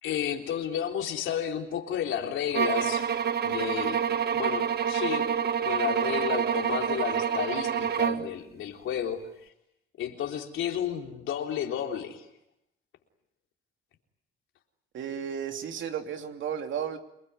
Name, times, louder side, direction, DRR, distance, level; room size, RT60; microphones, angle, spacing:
voice 1, 0.0-3.1 3.4-4.1 4.3-5.3 5.6-9.5 10.0-12.3, left 9 dB, 80° left, 3 dB, 3.7 m, -32 dB
sound 1, 2.5-8.3, right 8 dB, 55° right, 1.5 m, -27 dB
voice 2, 14.9-17.0, right 8 dB, 75° right, 5 dB, 3.1 m, -33 dB
30.0 x 20.5 x 9.7 m, 0.82 s
cardioid pair, 90°, 20 cm